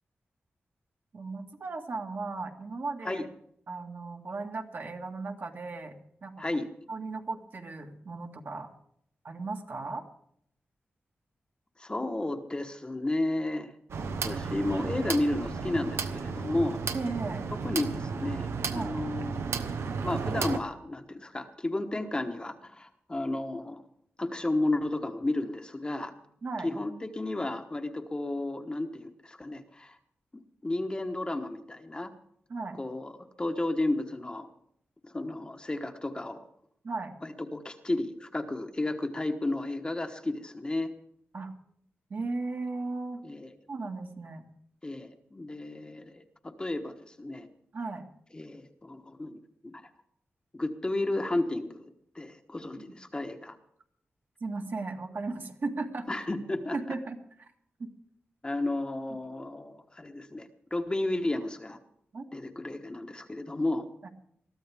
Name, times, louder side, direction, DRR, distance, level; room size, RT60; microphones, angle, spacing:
voice 1, 1.1-3.3 3.7-6.4 6.9-8.7 9.2-10.1 16.9-17.5 18.7-19.0 26.4-26.7 32.5-32.8 36.8-37.1 41.3-41.5 42.1-43.2 43.7-44.5 47.7-48.0 52.8-52.9 54.4-56.1 56.7-57.5 57.8-57.9 62.1-62.2 64.0-64.1, right 3 dB, 55° right, 3 dB, 1.8 m, -36 dB
voice 2, 11.8-13.7 14.0-16.8 17.6-19.7 20.0-23.8 24.2-26.1 26.6-30.0 30.6-32.1 32.8-33.1 33.4-34.5 35.0-36.4 37.2-40.9 43.2-43.5 44.8-47.5 48.3-49.8 50.5-53.6 56.1-56.8 58.4-61.8 62.3-63.9, left 2 dB, 20° left, 5 dB, 1.2 m, -32 dB
sound 1, 13.9-20.6, right 5 dB, 85° right, 1.1 m, -33 dB
22.0 x 14.0 x 3.5 m, 0.69 s
wide cardioid pair, 125°, 4 cm